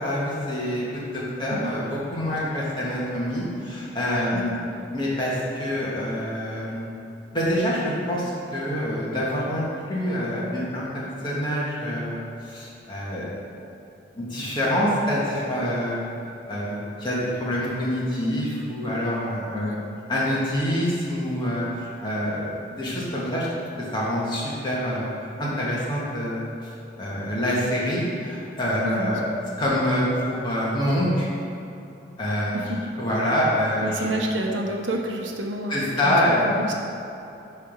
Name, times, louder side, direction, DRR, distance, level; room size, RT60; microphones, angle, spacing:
voice 1, 0.0-4.6 4.9-6.9 7.3-10.9 11.2-13.4 14.1-16.1 16.5-19.8 20.1-23.5 23.9-25.1 25.4-26.5 27.0-29.2 29.6-31.3 32.2-32.6 33.0-34.1 35.7-36.4, equal, 25° left, -6 dB, 1.7 m, -26 dB
voice 2, 28.8-29.2 32.5-32.9 33.8-36.7, right 1 dB, 90° right, 1 dB, 0.9 m, -29 dB
9.6 x 3.5 x 6.2 m, 2.8 s
head